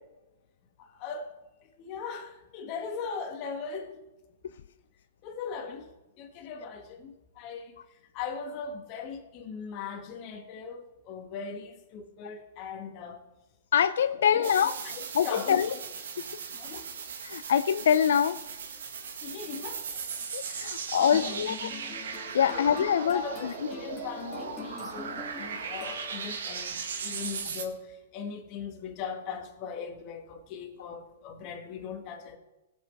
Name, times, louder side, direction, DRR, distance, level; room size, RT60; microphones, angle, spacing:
voice 1, 0.8-1.3 1.8-4.0 5.2-5.9 6.2-13.2 14.2-14.7 15.0-15.8 16.5-16.9 19.2-20.0 20.4-21.5 22.4-32.4, left 5 dB, 35° left, 1.7 m, -39 dB
voice 2, 13.7-14.7 15.1-15.7 17.2-18.4 20.3-21.7 22.3-23.2, left 8 dB, 75° left, 0.4 m, -24 dB
sound 1, 14.4-27.6, right 6 dB, 80° right, 1.4 m, -38 dB
sound 2, 21.1-26.5, left 5 dB, 10° left, 2.7 m, -44 dB
16.5 x 7.7 x 3.5 m
hypercardioid pair, 145°, 0 cm